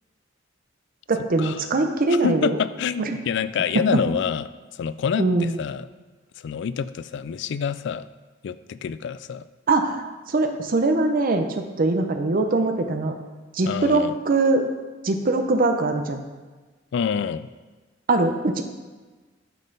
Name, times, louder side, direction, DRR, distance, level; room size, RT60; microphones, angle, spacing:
voice 1, 1.1-2.6 3.0-3.2 3.9-4.0 5.2-5.5 9.7-11.4 11.8-13.2 13.5-14.7 15.0-16.2 18.1-18.6, right 2 dB, 50° right, 6 dB, 0.6 m, -22 dB
voice 2, 2.1-5.9 6.4-8.1 8.4-9.5 13.7-14.1 16.9-17.5, left 7 dB, 65° left, 15 dB, 0.3 m, -27 dB
9.2 x 5.4 x 3.9 m, 1.3 s
head